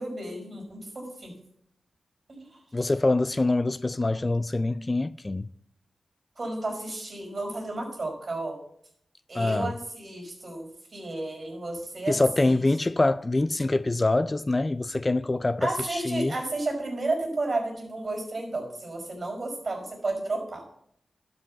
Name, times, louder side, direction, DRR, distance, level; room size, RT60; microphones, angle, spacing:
voice 1, 0.0-1.4 2.3-2.6 6.3-8.6 9.3-12.6 15.6-20.6, right 2 dB, 45° right, 5.2 m, -32 dB
voice 2, 2.7-5.5 9.4-9.7 12.1-16.3, left 2 dB, 25° left, 0.3 m, -25 dB
12.0 x 5.4 x 7.2 m
wide cardioid pair, 90°, 0 cm